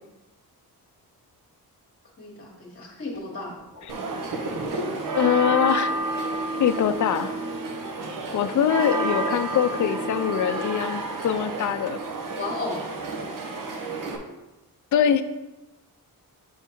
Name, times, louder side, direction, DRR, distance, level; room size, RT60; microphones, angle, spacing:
voice 1, 2.2-3.6 12.4-12.8, left 3 dB, 35° left, -3 dB, 1.2 m, -33 dB
sound 1, 3.1-3.9 4.2-8.6 9.4-12.0, right 1 dB, 30° right, 1.4 m, -49 dB
sound 2, 3.9-14.2, right 2 dB, 60° right, 1.0 m, -30 dB
voice 2, 5.1-5.9 6.6-7.3 8.3-12.0 14.9-15.2, left 8 dB, 55° left, 10 dB, 0.5 m, -23 dB
7.1 x 3.6 x 4.4 m, 1.0 s
wide cardioid pair, 125°, 37 cm